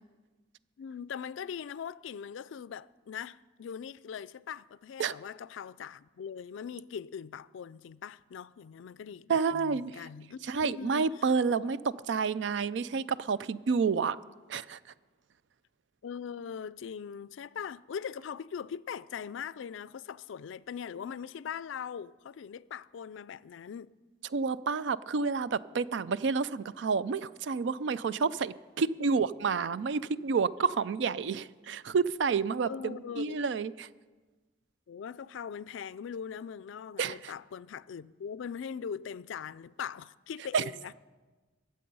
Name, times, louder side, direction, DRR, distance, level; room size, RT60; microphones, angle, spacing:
voice 1, 0.8-11.8 16.0-24.0 29.0-29.2 32.6-33.5 34.9-40.9, left 7 dB, 80° left, 0.3 m, -41 dB
voice 2, 9.3-9.9 10.4-11.8 12.1-14.2 14.5-14.8 24.3-33.9 37.0-37.3 40.5-40.6, right 5 dB, 70° right, 0.4 m, -29 dB
22.0 x 7.6 x 5.4 m
head